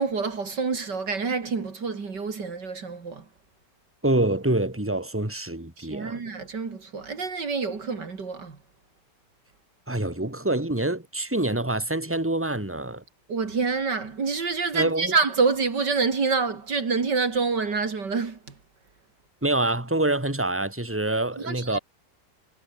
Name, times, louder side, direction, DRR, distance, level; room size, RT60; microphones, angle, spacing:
voice 1, 0.0-3.2 5.8-8.6 13.3-18.4 21.5-21.8, right 4 dB, 70° right, 3.3 m, -27 dB
voice 2, 4.0-6.2 9.9-13.0 14.7-15.2 19.4-21.8, right 1 dB, 5° right, 3.5 m, -26 dB
omnidirectional pair, 2.0 m